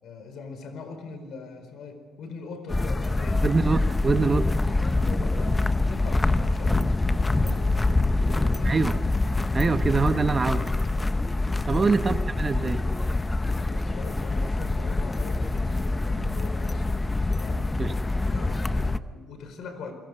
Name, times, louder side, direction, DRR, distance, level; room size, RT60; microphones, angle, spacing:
voice 1, 0.0-3.4 4.2-8.8 11.7-11.9 13.6-17.1 17.4-17.7 18.3-19.9, left 4 dB, 65° left, 8 dB, 4.6 m, -41 dB
sound 1, 2.7-19.0, left 2 dB, 15° left, 0.6 m, -25 dB
voice 2, 3.4-4.5 8.6-9.0 9.5-10.7 11.7-12.8 17.8-17.9, right 4 dB, 25° right, 9 dB, 0.9 m, -24 dB
29.0 x 21.5 x 6.7 m, 1.5 s
cardioid pair, 150°, 0 cm